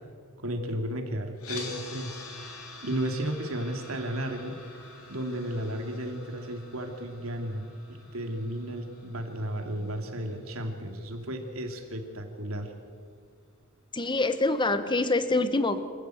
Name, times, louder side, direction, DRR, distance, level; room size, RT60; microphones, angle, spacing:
voice 1, 0.4-2.2 2.8-4.6 5.1-12.7, right 1 dB, 80° right, 4 dB, 2.8 m, -33 dB
sound 1, 1.4-11.5, left 3 dB, 90° left, 4.1 m, -46 dB
voice 2, 13.9-15.8, left 2 dB, 20° left, 11 dB, 1.1 m, -25 dB
26.5 x 15.0 x 7.9 m, 2.1 s
head